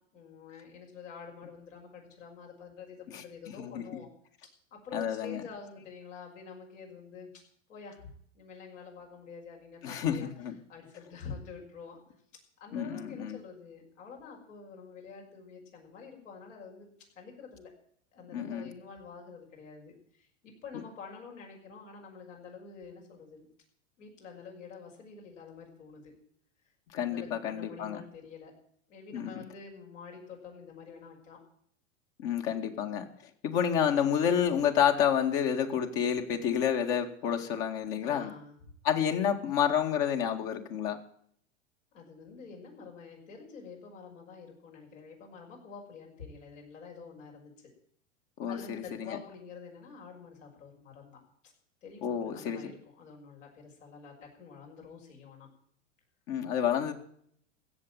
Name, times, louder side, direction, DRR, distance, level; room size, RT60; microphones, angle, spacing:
voice 1, 0.1-4.1 4.7-7.3 7.7-10.3 10.7-12.0 12.6-16.9 17.2-17.7 18.1-23.5 24.0-26.1 27.0-28.5 28.9-31.4 38.0-38.6 41.9-47.7 48.5-51.2 51.4-51.5 51.8-55.5, left 5 dB, 75° left, 1 dB, 5.9 m, -47 dB
voice 2, 3.1-3.9 4.9-5.4 9.8-10.6 12.7-13.4 18.3-18.7 20.7-20.8 26.9-28.0 29.1-29.4 32.2-33.1 33.4-38.3 38.8-41.0 48.4-49.2 52.0-52.7 56.3-56.9, left 8 dB, 50° left, 5 dB, 2.2 m, -29 dB
16.0 x 7.1 x 9.1 m, 0.64 s
hypercardioid pair, 105°, 38 cm